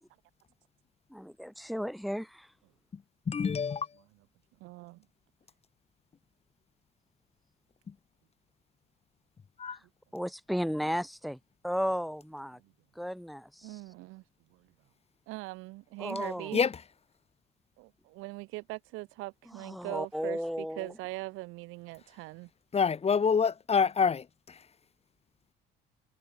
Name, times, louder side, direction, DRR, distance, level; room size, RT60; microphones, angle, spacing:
voice 1, 1.1-2.5 10.1-11.4 11.6-12.6 13.0-13.7 16.0-16.6 19.6-20.9, equal, ahead, 4.0 m, -34 dB
voice 2, 3.3-3.9 9.6-9.8 16.5-16.7 22.7-24.3, left 6 dB, 30° left, 1.9 m, -26 dB
voice 3, 4.6-5.0 13.6-14.2 14.5-14.6 15.3-16.6 17.8-22.5, right 22 dB, 80° right, 7.7 m, -41 dB
supercardioid pair, 90°, 20 cm